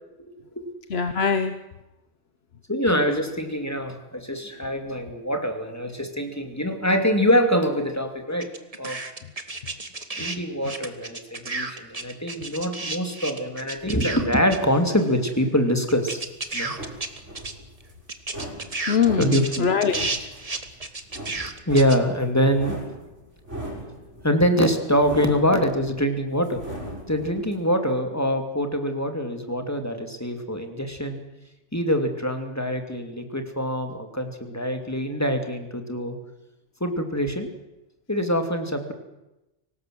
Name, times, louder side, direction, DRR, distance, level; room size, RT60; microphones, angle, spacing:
voice 1, 0.9-1.6 18.9-20.3, left 6 dB, 60° left, 10 dB, 1.3 m, -23 dB
voice 2, 2.7-8.5 8.8-9.0 10.1-16.2 16.5-16.7 19.2-19.7 21.7-22.8 24.2-26.6 27.1-31.2 31.7-36.2 36.8-37.5 38.1-38.9, equal, 15° left, 6 dB, 2.8 m, -24 dB
sound 1, 8.4-10.4 10.6-15.0 15.3-15.4 15.9-17.5 17.8-17.9 18.1-22.0, right 3 dB, 30° right, 1.7 m, -32 dB
sound 2, 15.9-27.6, right 1 dB, 80° right, 6.5 m, -39 dB
24.5 x 18.5 x 7.9 m, 0.96 s
omnidirectional pair, 1.2 m